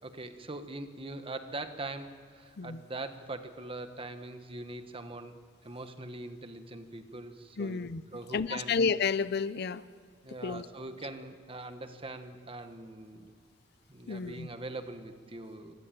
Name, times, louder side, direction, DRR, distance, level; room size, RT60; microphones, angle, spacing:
voice 1, 0.0-7.8 8.1-8.7 10.2-13.3 13.9-15.7, right 2 dB, 25° right, 8 dB, 1.3 m, -42 dB
voice 2, 7.6-8.0 8.3-9.8 10.4-10.7 14.1-14.5, left 5 dB, 55° left, 16 dB, 0.5 m, -31 dB
25.0 x 16.5 x 9.0 m, 2.2 s
head